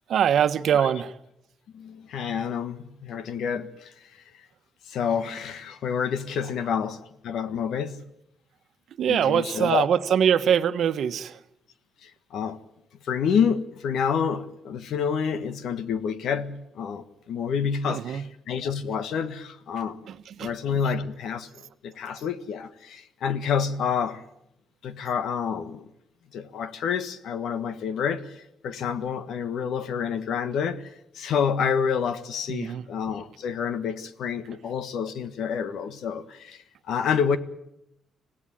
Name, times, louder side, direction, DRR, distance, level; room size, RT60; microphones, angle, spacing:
voice 1, 0.1-1.1 9.0-11.3 17.9-18.2 20.1-20.5 32.5-32.8, right 8 dB, 65° right, 11 dB, 1.1 m, -23 dB
voice 2, 1.7-3.9 4.9-7.0 7.2-8.0 9.1-9.9 12.0-12.6 13.0-20.1 20.4-21.5 21.8-24.2 24.8-25.9 26.3-28.3 28.6-30.9 31.1-36.6 36.9-37.4, left 7 dB, 75° left, 12 dB, 1.6 m, -28 dB
26.0 x 17.0 x 9.2 m, 0.82 s
cardioid pair, 90°, 0 cm